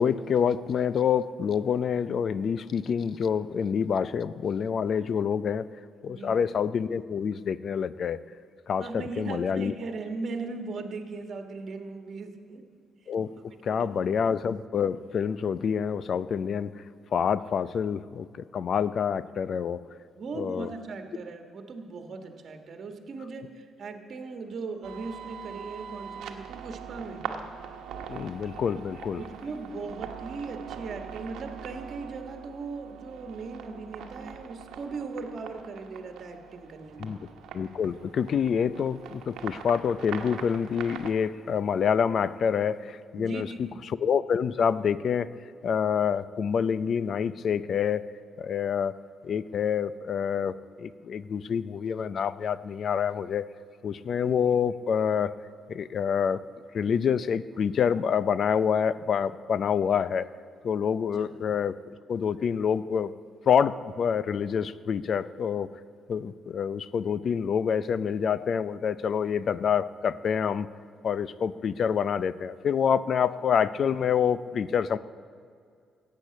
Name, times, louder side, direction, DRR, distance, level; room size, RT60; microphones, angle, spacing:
voice 1, 0.0-5.7 6.0-8.2 8.7-9.7 13.1-13.3 13.6-16.8 17.1-19.8 20.4-20.7 28.1-29.2 37.0-37.2 37.5-43.7 44.0-45.3 45.6-48.0 48.4-48.9 49.2-53.5 53.8-55.3 55.7-56.4 56.7-60.3 60.6-61.7 62.1-63.1 63.5-65.7 66.1-70.7 71.0-75.0, left 7 dB, 55° left, 16 dB, 0.5 m, -27 dB
voice 2, 6.1-6.5 8.8-12.6 13.7-13.9 20.2-27.3 29.2-37.2 43.1-43.8 61.2-61.3, right 4 dB, 55° right, 6 dB, 1.5 m, -38 dB
sound 1, 24.8-41.1, right 7 dB, 80° right, 1.1 m, -42 dB
14.5 x 8.5 x 8.6 m, 2.2 s
cardioid pair, 90°, 0 cm